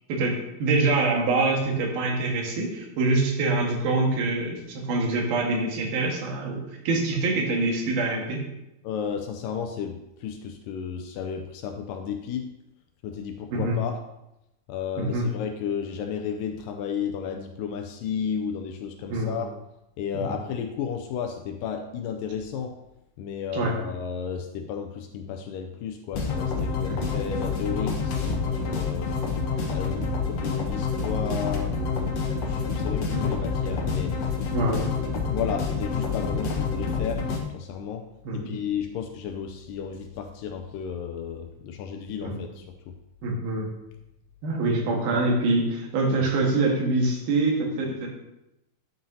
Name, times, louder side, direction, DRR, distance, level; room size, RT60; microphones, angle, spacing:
voice 1, 0.1-8.4 13.5-13.8 15.0-15.2 19.1-19.4 20.1-20.3 23.5-23.7 26.9-27.0 32.9-33.3 34.5-34.9 38.2-38.5 42.2-42.4 43.2-43.7 44.4-48.1, right 2 dB, 80° right, -1 dB, 3.4 m, -25 dB
voice 2, 8.8-12.5 13.0-14.0 14.7-19.5 20.0-22.8 23.2-29.1 29.7-32.1 32.5-34.2 35.3-38.1 38.3-42.7, left 7 dB, 80° left, 5 dB, 2.0 m, -33 dB
sound 1, 26.1-37.4, left 4 dB, 60° left, 1.7 m, -28 dB
10.5 x 7.7 x 2.8 m, 0.90 s
omnidirectional pair, 4.2 m